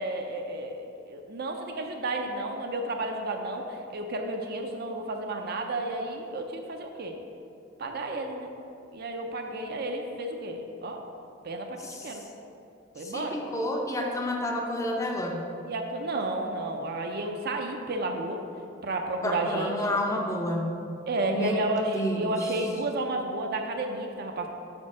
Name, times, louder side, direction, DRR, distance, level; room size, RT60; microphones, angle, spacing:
voice 1, 0.0-7.2 7.8-8.5 8.9-11.0 11.4-12.2 13.0-13.4 15.7-18.4 18.8-19.7 21.1-24.5, right 2 dB, 55° right, 3 dB, 0.5 m, -32 dB
voice 2, 11.8-12.2 13.0-15.4 19.2-20.8 21.3-21.6 21.9-22.5, left 1 dB, 15° left, 1 dB, 0.6 m, -30 dB
5.0 x 4.4 x 6.0 m, 2.6 s
head